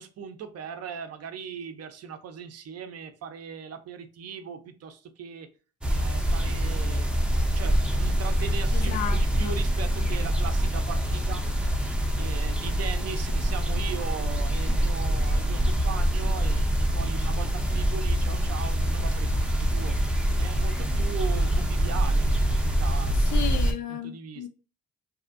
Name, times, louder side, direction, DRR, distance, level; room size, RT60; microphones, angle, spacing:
voice 1, 0.0-5.5 5.9-11.4 12.1-20.0 20.4-23.3 23.9-24.4, right 7 dB, 55° right, 0.5 m, -39 dB
sound 1, 5.8-23.7, equal, 5° right, 0.5 m, -25 dB
voice 2, 8.7-9.5 23.2-24.5, left 9 dB, 70° left, 0.5 m, -33 dB
2.7 x 2.4 x 2.4 m
cardioid pair, 90°, 30 cm